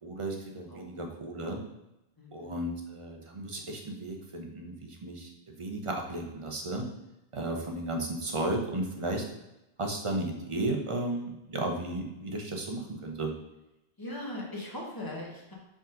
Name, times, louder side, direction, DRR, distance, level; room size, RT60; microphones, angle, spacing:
voice 1, 0.0-1.6 2.3-6.9 7.3-9.2 9.8-13.3, right 2 dB, 35° right, 1 dB, 0.8 m, -34 dB
voice 2, 2.2-2.6 14.0-15.5, left 1 dB, 20° left, -2 dB, 1.3 m, -39 dB
5.1 x 3.8 x 5.1 m, 0.92 s
omnidirectional pair, 1.1 m